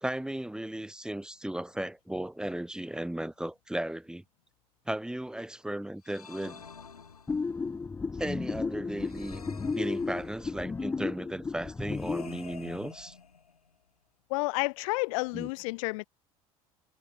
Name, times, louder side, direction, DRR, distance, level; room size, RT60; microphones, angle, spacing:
voice 1, 0.0-4.2 4.9-6.6 8.2-9.5 9.7-13.1 15.3-15.5, right 1 dB, 5° right, 1.3 m, -35 dB
sound 1, 6.0-7.7 9.0-10.7 11.9-13.8, left 5 dB, 90° left, 5.4 m, -49 dB
sound 2, 7.3-12.3, left 4 dB, 10° left, 0.3 m, -34 dB
voice 2, 14.3-16.1, left 26 dB, 65° left, 0.9 m, -30 dB
hypercardioid pair, 70°, 19 cm